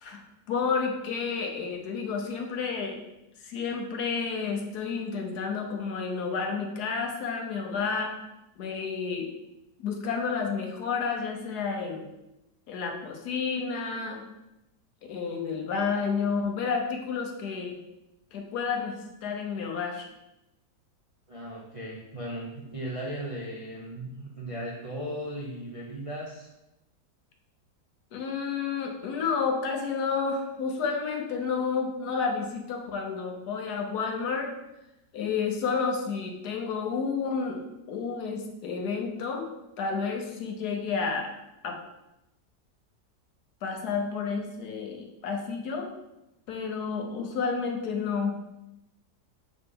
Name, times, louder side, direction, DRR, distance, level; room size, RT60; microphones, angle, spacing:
voice 1, 0.0-3.0 3.4-8.2 8.6-9.3 9.8-12.1 12.7-14.3 15.1-17.8 18.3-20.1 28.1-34.5 35.1-39.5 39.8-41.3 41.6-41.8 43.6-45.9 46.5-48.5, left 5 dB, 75° left, 2 dB, 1.3 m, -30 dB
voice 2, 21.3-26.5, right 1 dB, 35° right, -4 dB, 0.6 m, -37 dB
6.6 x 3.9 x 3.6 m, 0.92 s
omnidirectional pair, 1.7 m